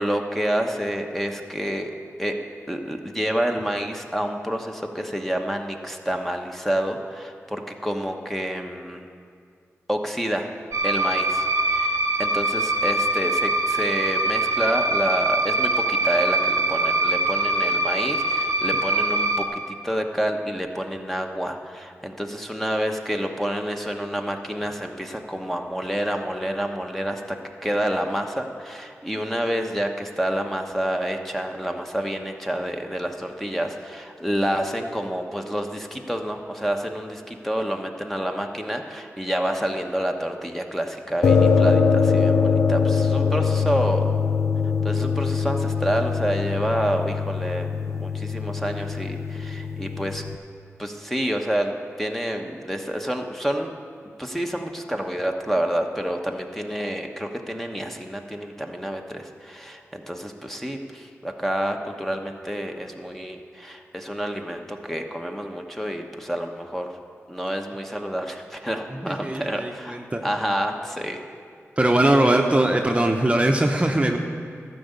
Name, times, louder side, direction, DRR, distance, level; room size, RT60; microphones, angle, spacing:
voice 1, 0.0-1.9 2.2-2.3 2.7-9.1 9.9-10.5 10.8-44.1 44.8-50.2 50.8-53.7 54.2-66.9 67.3-71.2, equal, 5° left, 3 dB, 1.1 m, -28 dB
sound 1, 10.7-19.4, right 2 dB, 75° right, 0.8 m, -23 dB
sound 2, 41.2-50.3, left 5 dB, 70° left, 0.5 m, -22 dB
voice 2, 69.0-70.2 71.8-74.2, right 1 dB, 25° right, 3 dB, 0.8 m, -21 dB
12.5 x 5.4 x 8.2 m, 2.2 s
cardioid pair, 45°, 5 cm